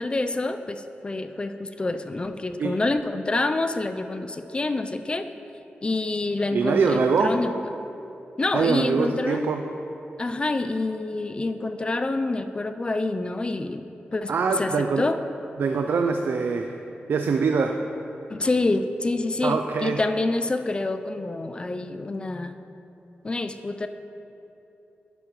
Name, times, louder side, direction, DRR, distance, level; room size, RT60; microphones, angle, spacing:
voice 1, 0.0-5.3 5.8-7.7 8.4-9.5 10.2-15.2 18.3-22.6 23.2-23.9, left 2 dB, 25° left, 9 dB, 0.3 m, -27 dB
voice 2, 6.5-7.3 8.5-9.6 14.3-15.0 15.6-16.7 17.1-17.8 19.4-20.0, right 5 dB, 70° right, 5 dB, 0.4 m, -23 dB
9.8 x 8.2 x 3.0 m, 2.9 s
wide cardioid pair, 110°, 4 cm